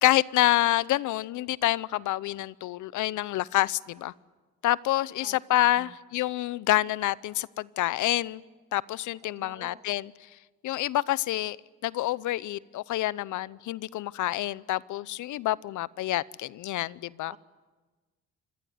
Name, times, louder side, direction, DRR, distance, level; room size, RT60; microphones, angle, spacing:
voice 1, 0.0-4.1 4.6-8.4 8.7-10.1 10.6-11.6 11.8-17.4, left 15 dB, 80° left, 0.7 m, -27 dB
voice 2, 9.2-9.8 17.3-17.4, right 3 dB, 20° right, 1.8 m, -49 dB
26.0 x 21.5 x 9.6 m
cardioid pair, 90°, 30 cm